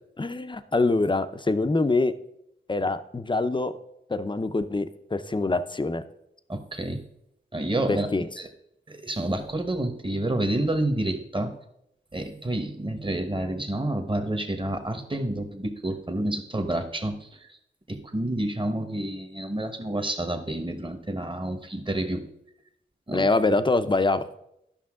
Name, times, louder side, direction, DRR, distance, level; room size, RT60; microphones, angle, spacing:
voice 1, 0.2-2.1 2.7-3.7 4.1-6.0 7.9-8.3 23.1-24.2, left 3 dB, 25° left, 11 dB, 0.6 m, -24 dB
voice 2, 6.5-7.0 7.5-8.5 8.9-11.6 12.1-17.6 17.9-22.2 23.1-23.3, right 1 dB, 25° right, 6 dB, 1.3 m, -29 dB
11.5 x 5.6 x 3.7 m, 0.79 s
cardioid pair, 50°, 20 cm